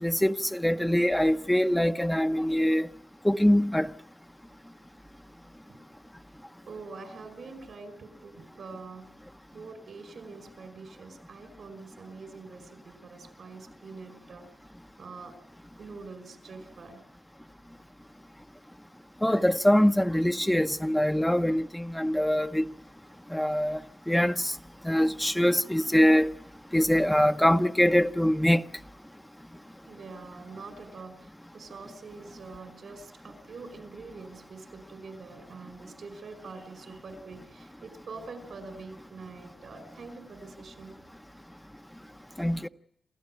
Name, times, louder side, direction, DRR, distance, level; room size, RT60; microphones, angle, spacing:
voice 1, 0.0-2.9 3.2-3.9 19.2-22.6 23.3-23.8 24.1-24.5 24.8-26.3 26.7-28.6 42.4-42.7, equal, 5° left, 0.8 m, -23 dB
voice 2, 6.7-9.1 9.5-14.5 15.0-15.4 15.7-17.0 29.9-41.0, right 4 dB, 80° right, 5.2 m, -45 dB
28.5 x 14.5 x 8.9 m
cardioid pair, 55°, 0 cm